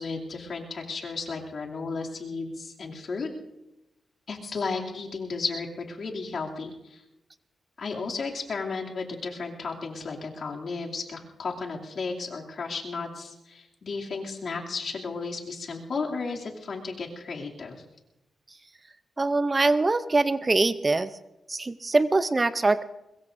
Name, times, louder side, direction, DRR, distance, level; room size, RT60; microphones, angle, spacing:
voice 1, 0.0-3.3 4.3-7.0 7.8-17.8, left 4 dB, 60° left, -1 dB, 2.6 m, -34 dB
voice 2, 19.2-21.1 21.5-22.8, right 3 dB, 25° right, 13 dB, 0.6 m, -23 dB
22.5 x 21.5 x 2.6 m, 0.92 s
cardioid pair, 100°, 0 cm